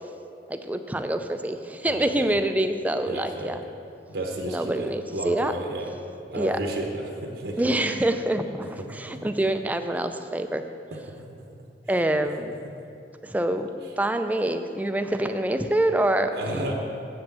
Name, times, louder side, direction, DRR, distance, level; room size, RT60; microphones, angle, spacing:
voice 1, 0.5-3.6 4.5-5.5 6.3-6.6 7.6-10.6 11.9-12.5 13.2-13.7 14.0-16.7, right 1 dB, 10° right, 7 dB, 0.4 m, -26 dB
voice 2, 1.8-2.3 3.0-3.6 4.1-5.9 6.3-7.7 10.9-11.0 12.1-12.2 16.2-16.7, right 1 dB, 75° right, 1 dB, 1.0 m, -32 dB
7.7 x 6.1 x 7.3 m, 2.6 s
head